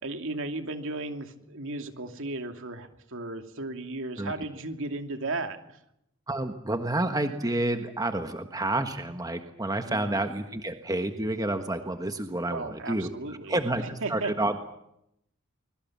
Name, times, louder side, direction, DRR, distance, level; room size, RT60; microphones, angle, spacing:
voice 1, 0.0-5.8 9.9-10.2 12.5-14.3, right 2 dB, 65° right, 6 dB, 2.6 m, -35 dB
voice 2, 6.3-13.1 13.5-14.6, right 1 dB, 15° right, 7 dB, 1.4 m, -29 dB
25.0 x 22.5 x 7.4 m, 0.81 s
head